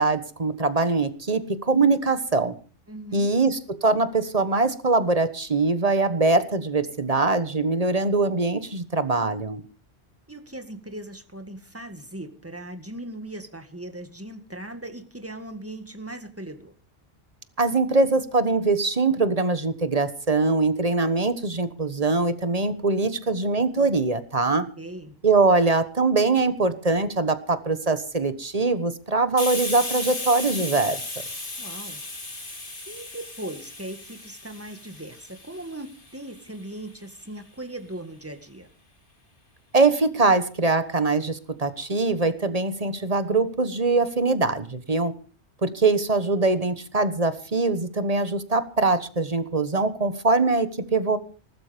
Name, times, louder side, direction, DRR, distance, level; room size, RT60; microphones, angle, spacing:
voice 1, 0.0-2.5 3.1-9.6 17.6-24.7 25.2-31.0 39.7-45.1 45.6-51.2, right 3 dB, 35° right, 11 dB, 1.4 m, -22 dB
voice 2, 2.9-3.3 10.3-16.8 24.8-25.2 31.6-32.0 32.9-38.7, right 1 dB, 10° right, 8 dB, 1.8 m, -39 dB
Hiss, 29.4-36.8, left 2 dB, 50° left, 2.9 m, -35 dB
19.5 x 13.0 x 5.1 m, 0.38 s
omnidirectional pair, 1.1 m